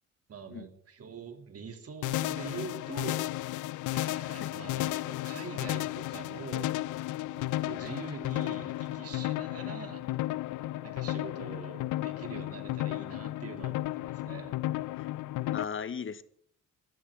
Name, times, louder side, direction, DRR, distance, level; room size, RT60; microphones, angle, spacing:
voice 1, 0.3-3.2 3.9-6.8 7.3-10.1 10.8-14.6, right 5 dB, 50° right, 6 dB, 2.8 m, -44 dB
sound 1, 2.0-15.6, left 16 dB, 80° left, 0.5 m, -33 dB
voice 2, 15.5-16.2, left 6 dB, 40° left, 15 dB, 0.9 m, -37 dB
19.5 x 14.0 x 3.7 m, 0.65 s
cardioid pair, 90°, 30 cm